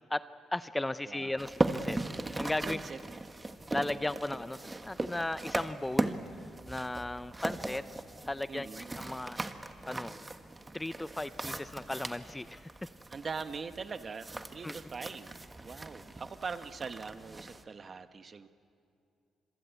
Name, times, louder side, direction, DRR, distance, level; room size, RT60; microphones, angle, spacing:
voice 1, 0.5-2.8 3.7-7.8 8.2-9.5 9.9-10.2 10.7-12.7 14.6-14.7, left 1 dB, 10° left, 14 dB, 0.6 m, -36 dB
voice 2, 1.0-1.4 2.4-3.0 8.5-9.1 13.1-15.4 15.6-18.5, right 5 dB, 40° right, 10 dB, 1.1 m, -42 dB
sound 1, 1.4-17.6, right 2 dB, 20° right, 1.3 m, -38 dB
27.0 x 22.5 x 8.2 m, 2.5 s
cardioid pair, 90°, 0 cm